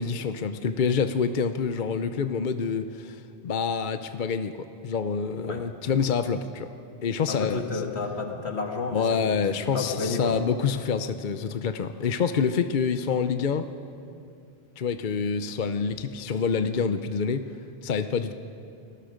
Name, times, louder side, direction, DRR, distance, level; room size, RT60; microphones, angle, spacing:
voice 1, 0.0-6.7 7.0-7.8 8.9-13.7 14.8-17.5 17.8-18.3, left 6 dB, 50° left, 9 dB, 0.8 m, -27 dB
voice 2, 7.3-10.4, left 4 dB, 75° left, 2 dB, 2.2 m, -31 dB
29.0 x 19.5 x 5.1 m, 2.6 s
omnidirectional pair, 1.1 m